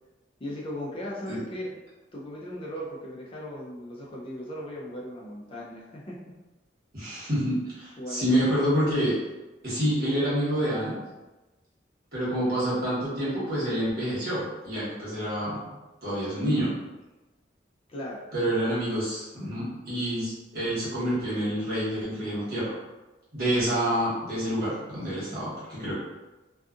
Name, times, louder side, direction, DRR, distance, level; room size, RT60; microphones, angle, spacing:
voice 1, 0.4-1.7 2.1-6.3 8.0-8.6 17.9-18.2, equal, 30° left, -4 dB, 0.4 m, -37 dB
voice 2, 6.9-9.2 9.6-11.0 12.1-15.7 16.0-16.7 18.3-22.7 23.3-25.9, equal, 50° right, -10 dB, 1.3 m, -27 dB
2.6 x 2.3 x 2.4 m, 1.1 s
head